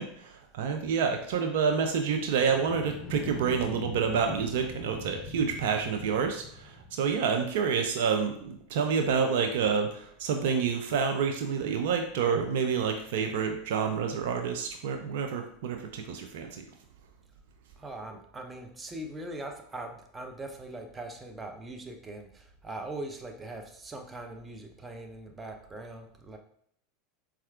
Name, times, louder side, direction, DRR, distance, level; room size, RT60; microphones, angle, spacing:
voice 1, 0.0-16.7, right 6 dB, 65° right, 5 dB, 0.3 m, -28 dB
sound 1, 2.3-7.2, left 4 dB, 45° left, 0.5 m, -43 dB
voice 2, 17.8-26.4, right 2 dB, 20° right, 4 dB, 0.5 m, -41 dB
4.2 x 2.3 x 2.4 m, 0.67 s
hypercardioid pair, 85°, 0 cm